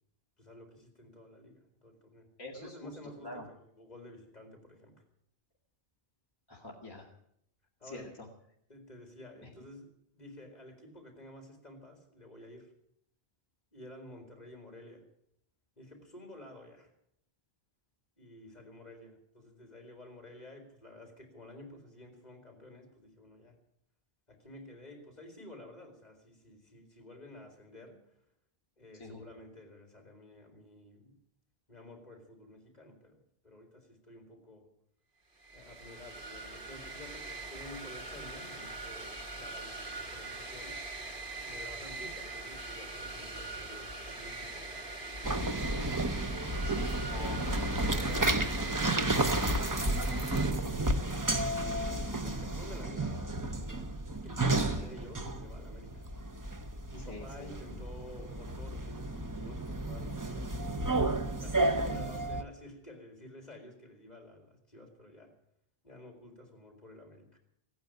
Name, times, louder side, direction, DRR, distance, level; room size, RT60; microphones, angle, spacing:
voice 1, 0.4-2.3 2.5-4.9 7.8-8.1 8.7-9.9 10.1-12.7 13.7-15.0 15.8-16.9 18.2-23.6 24.3-28.1 28.8-31.1 31.7-34.7 35.5-40.8 41.4-45.6 49.5-56.0 56.9-60.6 61.4-65.3 65.8-67.4, left 1 dB, 40° left, 3 dB, 3.8 m, -51 dB
voice 2, 2.4-3.5 6.5-7.1 7.8-8.3 29.0-29.2 46.6-49.4 50.1-50.2 54.5-54.9 57.1-57.8 61.6-61.8, left 2 dB, 20° left, -2 dB, 2.0 m, -46 dB
sound 1, 35.4-50.5, right 3 dB, 60° right, 2.2 m, -42 dB
sound 2, 45.2-62.4, right 2 dB, 20° right, 0.8 m, -32 dB
16.5 x 9.4 x 9.0 m, 0.72 s
omnidirectional pair, 1.0 m